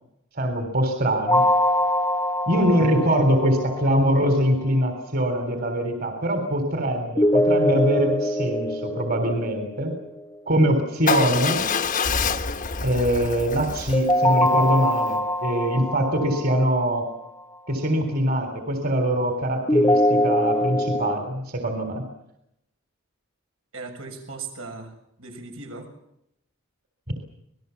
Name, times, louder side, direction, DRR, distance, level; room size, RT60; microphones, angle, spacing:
voice 1, 0.4-1.4 2.5-9.9 10.5-11.6 12.8-17.1 17.7-22.0, equal, 45° right, 6 dB, 3.7 m, -23 dB
sound 1, 1.3-4.2 7.2-10.2 13.9-17.1 19.7-21.2, left 1 dB, 15° left, 0.8 m, -23 dB
Motorcycle / Engine starting / Idling, 11.1-15.2, left 5 dB, 40° left, 1.2 m, -27 dB
voice 2, 23.7-25.9, right 4 dB, 80° right, 4 dB, 6.7 m, -38 dB
28.0 x 19.5 x 7.1 m, 0.80 s
head